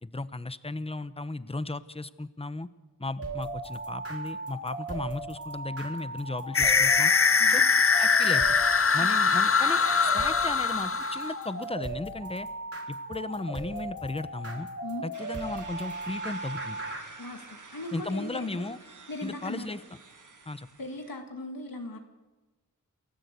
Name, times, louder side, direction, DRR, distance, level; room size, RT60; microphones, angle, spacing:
voice 1, 0.0-2.7 3.0-7.1 7.5-7.6 8.0-8.5 8.9-12.5 12.9-14.7 15.0-16.8 17.9-18.8 19.2-19.8 20.5-20.7, left 2 dB, 15° left, 14 dB, 0.9 m, -35 dB
sound 1, 3.2-17.0, right 2 dB, 45° right, 4.7 m, -37 dB
sound 2, 6.5-11.5, left 5 dB, 40° left, 0.7 m, -22 dB
sound 3, 15.1-21.2, right 3 dB, 65° right, 2.2 m, -49 dB
voice 2, 17.2-18.7 19.1-19.7 20.8-22.0, left 2 dB, 85° left, 3 dB, 2.1 m, -38 dB
28.5 x 14.0 x 8.3 m, 1.2 s
wide cardioid pair, 65°, 34 cm